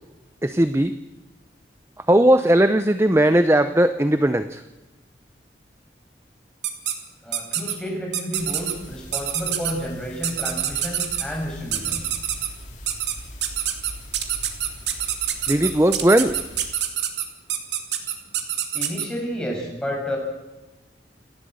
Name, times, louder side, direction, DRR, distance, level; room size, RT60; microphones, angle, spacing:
voice 1, 0.4-1.0 2.1-4.6 15.5-16.4, right 1 dB, 15° right, 10 dB, 0.7 m, -18 dB
sound 1, 6.6-6.9 7.3-7.7 8.1-8.7 9.1-9.7 10.2-11.2 11.7-12.5 12.9-13.1 13.4-19.1, right 10 dB, 85° right, 2.6 m, -25 dB
voice 2, 7.2-12.1 18.7-20.2, equal, 5° left, -1 dB, 6.6 m, -30 dB
sound 2, 8.3-16.8, left 1 dB, 45° left, 3.7 m, -42 dB
29.0 x 12.5 x 7.9 m, 1.1 s
head